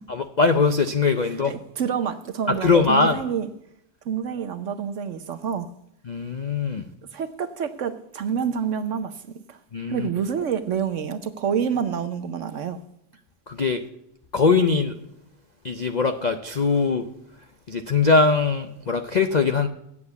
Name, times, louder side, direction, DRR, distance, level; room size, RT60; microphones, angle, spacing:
voice 1, 0.1-1.5 2.5-3.2 6.1-6.9 9.7-10.1 13.5-13.8 14.3-15.0 15.6-17.1 17.7-19.7, left 4 dB, 65° left, 0.4 m, -21 dB
voice 2, 1.5-3.5 4.0-5.7 7.1-9.2 9.5-9.6 9.9-12.8, right 7 dB, 60° right, 0.9 m, -27 dB
8.5 x 7.9 x 8.1 m
omnidirectional pair, 1.7 m